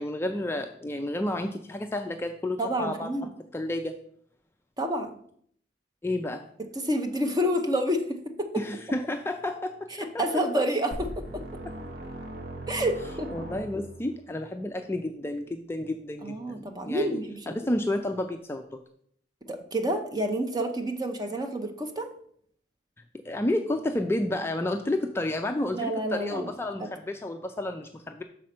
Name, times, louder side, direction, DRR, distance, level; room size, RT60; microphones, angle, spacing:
voice 1, 0.0-3.1 3.5-4.0 6.0-6.4 8.6-10.2 11.6-11.8 13.3-17.2 17.5-18.8 23.2-28.2, left 1 dB, 15° left, 5 dB, 0.3 m, -31 dB
voice 2, 2.6-3.3 4.8-5.2 6.7-8.5 10.0-11.4 12.7-13.3 16.2-17.5 19.5-22.1 25.7-26.5 26.8-26.9, equal, 20° right, 4 dB, 0.7 m, -29 dB
sound 1, 10.9-14.2, right 1 dB, 50° right, 1.0 m, -39 dB
6.3 x 4.2 x 5.7 m, 0.64 s
head